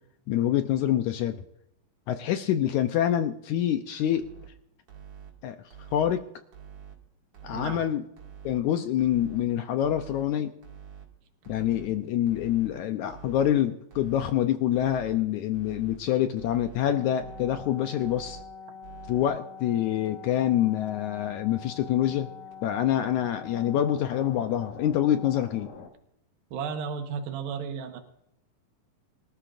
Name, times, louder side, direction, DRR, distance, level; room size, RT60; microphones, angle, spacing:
voice 1, 0.3-1.4 2.1-4.3 5.4-5.5 5.9-6.2 7.4-8.0 8.4-10.5 11.5-18.4 19.1-22.3 22.6-25.7, left 11 dB, 80° left, 8 dB, 1.8 m, -26 dB
sound 1, 4.1-4.5 4.9-5.3 5.7-6.1 6.5-6.9 7.3-7.8 8.2-8.6 9.0-9.4 9.8-10.2 10.6-11.0 11.4-11.9 12.3-12.7 13.1-13.5 13.9-14.3 14.7-15.2 15.5-16.0 16.4-16.8 17.2-17.6 18.0-18.4 18.8-19.2 19.6-19.7 20.1-20.2 20.5-20.6 20.9-21.0 21.3-21.4 21.7-21.8 22.1-22.2 22.5-22.6 22.9-23.0 23.3-23.4, right 8 dB, 55° right, 3.2 m, -46 dB
voice 2, 7.5-7.9 26.5-28.0, right 6 dB, 90° right, 5 dB, 3.1 m, -33 dB
sound 2, 16.8-25.9, left 6 dB, 55° left, 2.3 m, -45 dB
24.0 x 13.0 x 2.5 m, 0.81 s
omnidirectional pair, 4.0 m